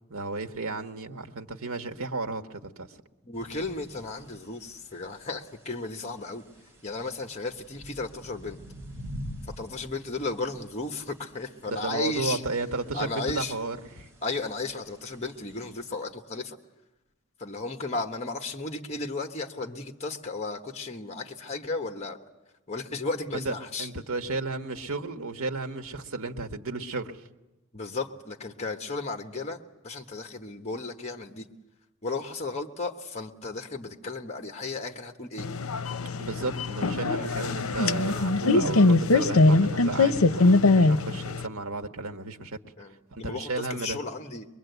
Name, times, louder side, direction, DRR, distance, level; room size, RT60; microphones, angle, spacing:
voice 1, 0.1-2.9 11.7-14.1 23.3-23.5 23.8-27.2 36.2-42.6 43.1-44.0, right 3 dB, 80° right, 5 dB, 1.5 m, -33 dB
voice 2, 3.2-6.4 6.8-8.6 9.4-12.4 12.9-13.6 14.2-16.6 17.4-22.2 22.7-23.9 27.7-29.6 29.8-31.5 32.0-35.5 42.8-44.5, left 3 dB, 30° left, 5 dB, 1.2 m, -34 dB
sound 1, 3.3-16.0, equal, 10° right, 5.6 m, -47 dB
sound 2, 35.4-41.5, left 3 dB, 80° left, 0.7 m, -22 dB
23.5 x 23.0 x 8.1 m, 1.1 s
head